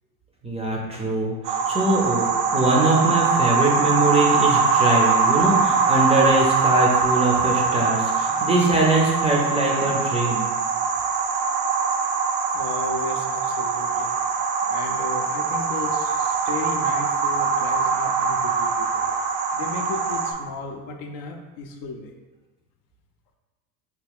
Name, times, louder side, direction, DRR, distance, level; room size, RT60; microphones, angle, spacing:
voice 1, 0.4-2.3 2.5-10.5, right 2 dB, 15° right, -2 dB, 0.5 m, -22 dB
sound 1, 1.4-20.3, right 5 dB, 65° right, 0.6 m, -22 dB
voice 2, 12.5-14.1 14.7-19.0 19.5-22.1, left 4 dB, 50° left, 4 dB, 0.5 m, -35 dB
3.5 x 2.2 x 3.5 m, 1.2 s
hypercardioid pair, 90°, 45 cm